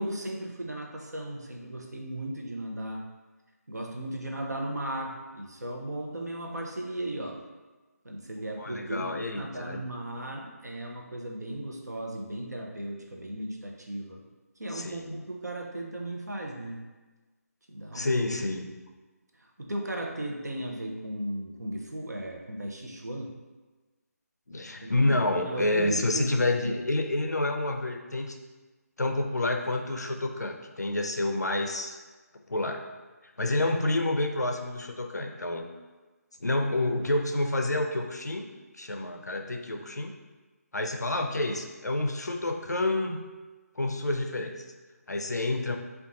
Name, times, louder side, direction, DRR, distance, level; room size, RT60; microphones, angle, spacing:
voice 1, 0.0-3.1 3.7-7.4 8.0-14.2 14.6-16.8 17.7-18.2 19.6-23.3 24.8-26.7 45.1-45.3, right 1 dB, 80° right, 1 dB, 0.5 m, -36 dB
voice 2, 8.6-9.8 14.7-15.2 17.9-18.7 24.5-28.3 29.0-32.0 32.5-32.8 33.4-35.7 36.4-38.5 38.8-40.2 40.7-43.2 43.8-44.6 45.1-45.8, left 2 dB, 80° left, 4 dB, 0.4 m, -28 dB
3.9 x 2.3 x 2.5 m, 1.2 s
figure-of-eight pair, 155°, 9 cm